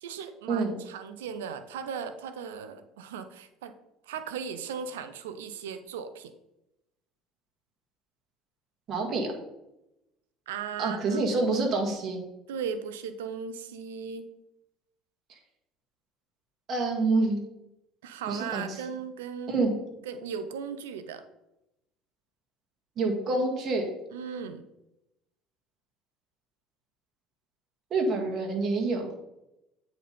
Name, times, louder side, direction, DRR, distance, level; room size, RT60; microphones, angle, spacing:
voice 1, 0.0-3.7 4.1-6.3 10.5-11.2 12.5-14.3 18.0-19.5 20.0-21.2 24.1-24.6, right 6 dB, 90° right, 10 dB, 0.6 m, -37 dB
voice 2, 8.9-9.3 10.8-12.2 16.7-17.5 18.3-18.8 19.5-19.7 23.0-23.8 27.9-29.1, right 3 dB, 50° right, 1 dB, 2.0 m, -27 dB
8.5 x 4.1 x 5.1 m, 0.89 s
supercardioid pair, 80°, 0 cm